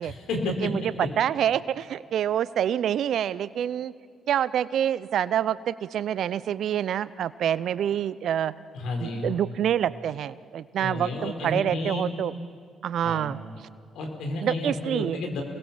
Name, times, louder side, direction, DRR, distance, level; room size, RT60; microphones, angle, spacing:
voice 1, 0.0-0.7 8.7-9.3 10.8-12.1 13.0-13.3 13.9-15.4, left 2 dB, 70° left, 3 dB, 4.3 m, -31 dB
voice 2, 0.6-3.9 4.3-8.5 9.0-12.3 12.8-13.4 14.4-15.2, right 10 dB, 65° right, 18 dB, 0.6 m, -27 dB
28.0 x 20.5 x 7.4 m, 2.1 s
hypercardioid pair, 45°, 0 cm